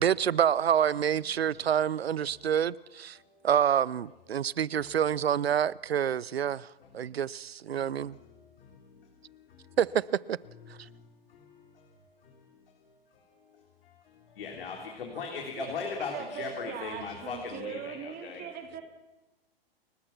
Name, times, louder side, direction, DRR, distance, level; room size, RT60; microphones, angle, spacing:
voice 1, 0.0-3.2 3.4-6.7 6.9-8.2 9.8-10.4, right 9 dB, 85° right, 0.6 m, -27 dB
voice 2, 6.8-7.2 7.7-9.8 10.8-12.0 12.2-12.9 13.1-13.3 13.8-18.5, left 5 dB, 65° left, 3.7 m, -41 dB
voice 3, 15.1-18.8, right 7 dB, 30° right, 2.7 m, -41 dB
29.5 x 15.0 x 6.0 m
hypercardioid pair, 115°, 30 cm